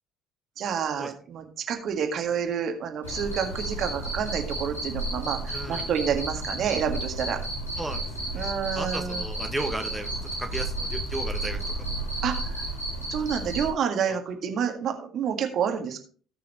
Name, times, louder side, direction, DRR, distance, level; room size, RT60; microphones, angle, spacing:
voice 1, 0.6-7.4 8.3-9.3 12.2-12.6 13.1-16.0, right 7 dB, 50° right, 4 dB, 1.8 m, -29 dB
Cricket, 3.0-13.7, right 1 dB, 85° left, 4.6 m, -32 dB
voice 2, 5.5-5.9 7.8-8.1 8.3-12.1 14.1-14.2, right 2 dB, 10° right, 3 dB, 1.4 m, -35 dB
17.5 x 6.2 x 3.0 m, 0.43 s
figure-of-eight pair, 55°, 0 cm